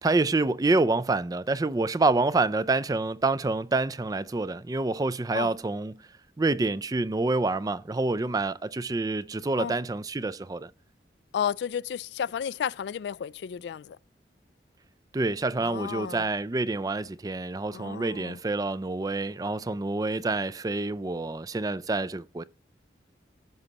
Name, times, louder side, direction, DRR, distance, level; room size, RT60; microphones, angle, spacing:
voice 1, 0.0-6.0 6.4-10.7 15.1-22.4, right 3 dB, 20° right, 0.3 m, -27 dB
voice 2, 11.3-14.0 15.6-16.2 17.7-18.4, left 8 dB, 75° left, 0.3 m, -32 dB
15.0 x 5.3 x 2.9 m
head